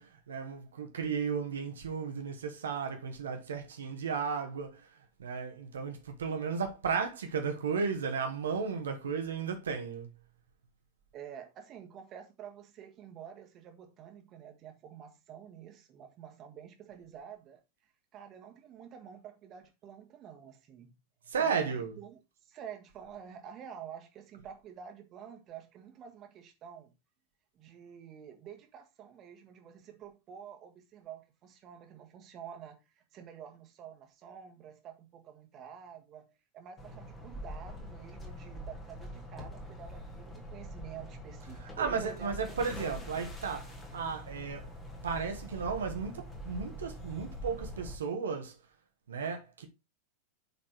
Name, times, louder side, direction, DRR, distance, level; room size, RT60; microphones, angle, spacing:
voice 1, 0.0-4.9 5.2-10.1 21.3-21.9 41.6-44.7 45.0-48.5 49.1-49.7, right 5 dB, 65° right, 1.6 m, -34 dB
voice 2, 11.1-17.6 18.1-20.9 21.4-21.6 22.0-26.9 27.5-42.6, right 8 dB, 35° right, 1.7 m, -49 dB
sound 1, 36.8-48.0, equal, 15° left, 2.0 m, -44 dB
8.3 x 4.2 x 4.5 m
figure-of-eight pair, 90°, 0 cm